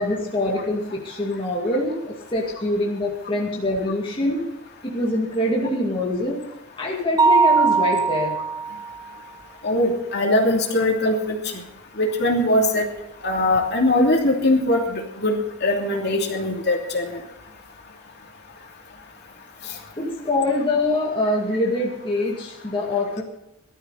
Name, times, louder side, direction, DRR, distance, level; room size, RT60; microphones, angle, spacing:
voice 1, 0.0-4.4 4.8-6.4 6.8-8.4 20.0-23.2, left 1 dB, 25° left, -2 dB, 2.2 m, -24 dB
Mallet percussion, 7.2-9.0, right 4 dB, 20° right, 0.7 m, -19 dB
voice 2, 9.6-11.4 12.0-12.9 13.2-17.2, left 1 dB, 50° left, 0 dB, 2.9 m, -21 dB
18.5 x 13.0 x 4.1 m, 0.85 s
head